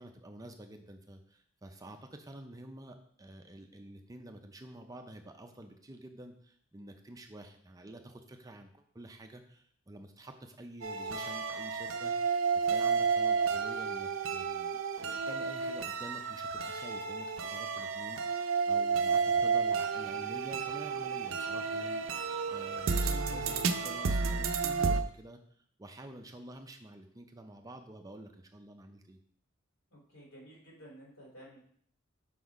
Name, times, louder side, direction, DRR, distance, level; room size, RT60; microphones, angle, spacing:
voice 1, 0.0-29.2, right 1 dB, 20° right, 5 dB, 0.5 m, -49 dB
sound 1, 10.8-25.0, right 5 dB, 75° right, 0.5 m, -31 dB
voice 2, 29.9-31.6, right 1 dB, 70° left, -4 dB, 2.8 m, -53 dB
6.2 x 4.0 x 4.7 m, 0.62 s
head